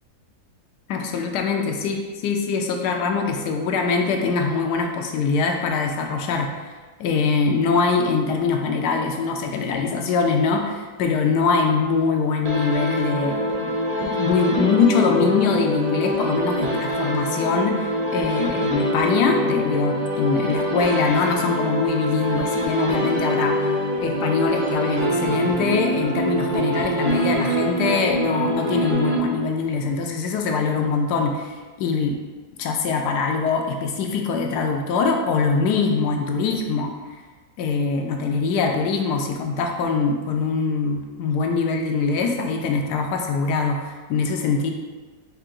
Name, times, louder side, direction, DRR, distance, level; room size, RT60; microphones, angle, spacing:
voice 1, 0.9-6.7 7.0-13.6 14.0-23.6 24.0-32.2 32.6-36.9 37.6-44.7, left 4 dB, 80° left, 3 dB, 1.1 m, -23 dB
sound 1, 12.4-29.7, equal, 65° right, 0.3 m, -24 dB
4.6 x 2.7 x 3.8 m, 1.3 s
omnidirectional pair, 1.8 m